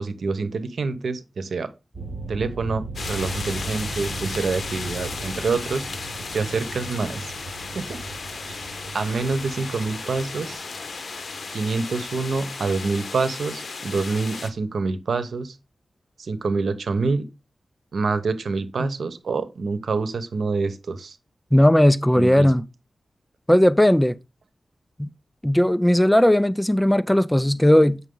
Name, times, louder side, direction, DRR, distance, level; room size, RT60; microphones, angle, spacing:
voice 1, 0.0-1.7 2.3-5.9 6.3-7.3 7.7-8.0 8.5-8.6 8.9-10.6 11.5-15.6 16.2-17.3 17.9-21.2 22.1-22.5, right 4 dB, 85° right, 0.9 m, -26 dB
sound 1, 1.9-12.9, right 3 dB, 45° right, 5.2 m, -38 dB
sound 2, 3.0-14.5, left 4 dB, 65° left, 1.0 m, -35 dB
voice 2, 21.5-22.6 23.5-24.2 25.0-25.1 25.4-28.0, left 1 dB, 10° left, 0.4 m, -17 dB
8.2 x 5.8 x 3.8 m
wide cardioid pair, 100°, 0 cm